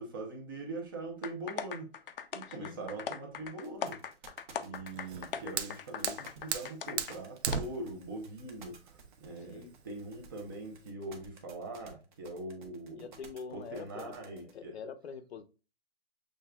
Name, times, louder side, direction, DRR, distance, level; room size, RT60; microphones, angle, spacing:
voice 1, 0.0-4.0 4.6-13.1 13.5-14.8, right 2 dB, 20° right, 0.7 m, -42 dB
sound 1, 1.2-7.2 7.5-7.6, left 7 dB, 60° left, 0.5 m, -40 dB
voice 2, 2.5-2.9 9.4-9.8 13.0-15.4, left 6 dB, 85° left, 0.8 m, -45 dB
sound 2, 3.6-14.5, right 5 dB, 50° right, 1.1 m, -55 dB
Fire, 4.9-10.9, right 6 dB, 90° right, 0.8 m, -39 dB
6.4 x 3.3 x 2.3 m
hypercardioid pair, 175°, 32 cm